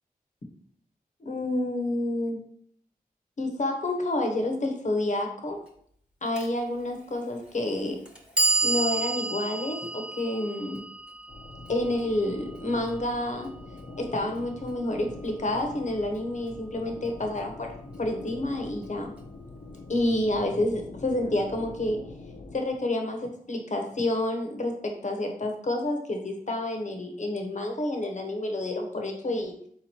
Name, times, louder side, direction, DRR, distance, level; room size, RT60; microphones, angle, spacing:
voice 1, 1.2-2.4 3.4-5.6 6.2-8.0 8.6-10.8 11.7-13.5 14.0-19.1 19.9-22.0 22.5-29.5, left 1 dB, 55° left, 3 dB, 0.9 m, -29 dB
Clock, 6.4-6.5 7.4-7.5 8.0-14.1, right 3 dB, 5° right, 1.0 m, -31 dB
sound 1, 11.3-22.6, left 2 dB, 80° left, 0.7 m, -44 dB
3.8 x 2.9 x 4.3 m, 0.64 s
cardioid pair, 50°, 15 cm